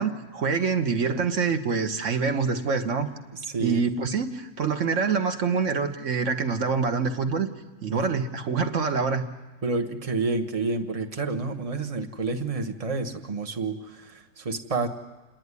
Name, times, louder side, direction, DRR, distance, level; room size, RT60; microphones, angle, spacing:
voice 1, 0.0-3.1 3.6-7.5 7.8-9.2, right 5 dB, 50° right, 7 dB, 1.4 m, -26 dB
voice 2, 3.3-3.8 7.9-8.2 9.6-14.9, right 3 dB, 25° right, 5 dB, 1.0 m, -29 dB
28.0 x 10.5 x 9.6 m, 1.2 s
omnidirectional pair, 1.8 m